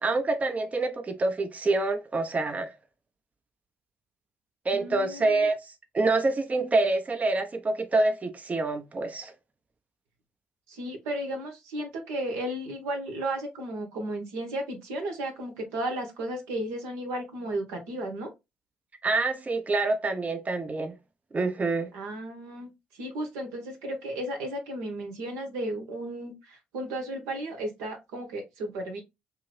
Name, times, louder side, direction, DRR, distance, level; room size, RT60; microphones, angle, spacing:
voice 1, 0.0-2.7 4.6-9.3 19.0-20.9 21.3-21.9, right 3 dB, 30° right, 0.5 m, -26 dB
voice 2, 4.7-5.5 10.7-18.3 21.9-29.0, right 1 dB, 75° right, 0.9 m, -34 dB
2.7 x 2.6 x 3.1 m
hypercardioid pair, 45°, 5 cm